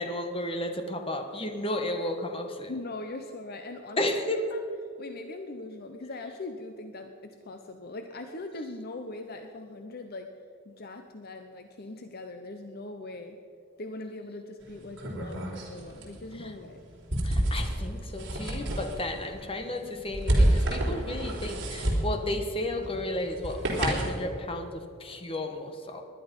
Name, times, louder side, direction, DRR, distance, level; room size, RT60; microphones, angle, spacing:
voice 1, 0.0-2.7 4.0-4.4 16.4-16.5 17.2-26.0, left 1 dB, 25° left, 5 dB, 1.3 m, -33 dB
voice 2, 2.7-4.7 5.0-10.3 10.6-13.4 13.8-16.8, left 2 dB, 50° left, 6 dB, 0.8 m, -41 dB
sound 1, 14.6-24.2, right 1 dB, 60° right, 3.4 m, -30 dB
19.5 x 11.0 x 5.4 m, 2.4 s
head